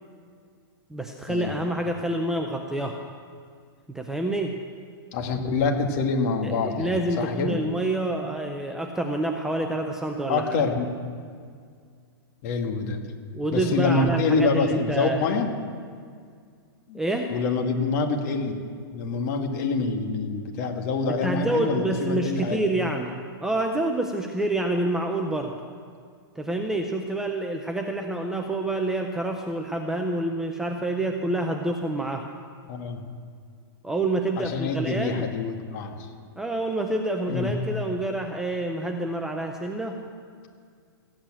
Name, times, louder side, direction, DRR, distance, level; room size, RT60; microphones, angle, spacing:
voice 1, 0.9-3.0 3.9-4.6 6.4-10.5 13.3-15.2 16.9-17.3 21.2-25.5 26.4-32.3 33.8-35.3 36.4-40.0, right 2 dB, 5° right, 3 dB, 0.5 m, -27 dB
voice 2, 5.1-7.6 10.3-10.9 12.4-13.0 13.5-15.5 16.9-17.0 17.3-18.6 18.9-22.6 32.7-33.0 34.4-35.9 37.2-37.5, left 4 dB, 40° left, 4 dB, 1.8 m, -26 dB
15.0 x 8.8 x 8.9 m, 2.1 s
hypercardioid pair, 160°, 13 cm